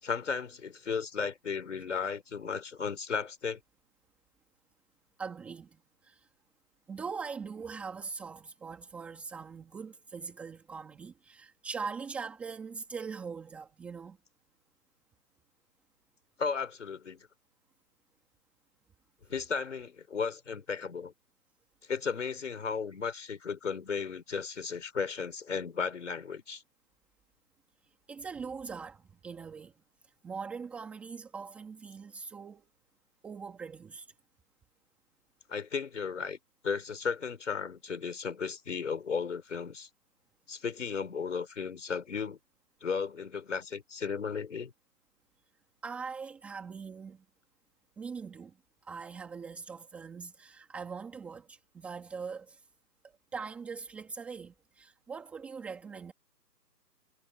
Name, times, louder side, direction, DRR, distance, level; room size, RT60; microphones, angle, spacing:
voice 1, 0.0-3.6 16.4-17.3 19.3-21.1 21.9-26.6 35.5-36.4 36.6-39.9 40.5-42.4 42.8-44.7, left 5 dB, 45° left, 5.0 m, -35 dB
voice 2, 5.2-6.3 6.9-14.2 28.1-29.7 30.2-32.7 33.2-34.1 45.8-47.2 48.0-48.5 48.8-52.6 53.3-56.1, right 5 dB, 5° right, 2.2 m, -41 dB
hypercardioid pair, 170°, 50 cm